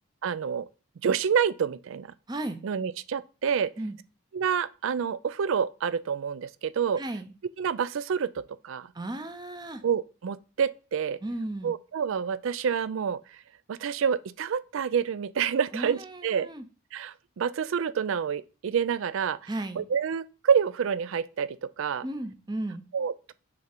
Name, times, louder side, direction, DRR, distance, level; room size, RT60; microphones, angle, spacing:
voice 1, 0.2-0.7 1.0-2.1 2.6-3.7 4.3-7.0 7.6-8.9 9.8-11.2 11.6-13.2 13.7-16.5 16.9-19.4 19.8-22.0 22.9-23.3, right 7 dB, 65° right, 0.4 m, -28 dB
voice 2, 2.3-2.6 3.8-4.0 7.0-7.3 8.9-9.8 11.2-11.7 15.7-16.7 19.5-19.9 22.0-22.8, right 1 dB, 20° right, 0.6 m, -35 dB
6.3 x 3.7 x 4.4 m
head